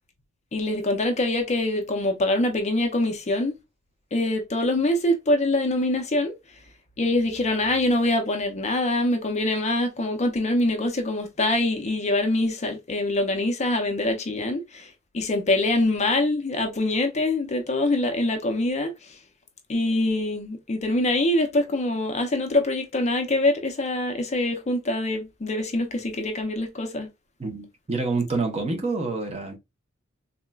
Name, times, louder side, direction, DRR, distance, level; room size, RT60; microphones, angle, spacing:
voice 1, 0.5-3.6 4.1-6.3 7.0-19.2 19.7-27.1, left 1 dB, 35° left, 0.5 m, -24 dB
voice 2, 27.4-29.6, right 3 dB, 30° right, 0.7 m, -27 dB
3.8 x 2.1 x 2.2 m
head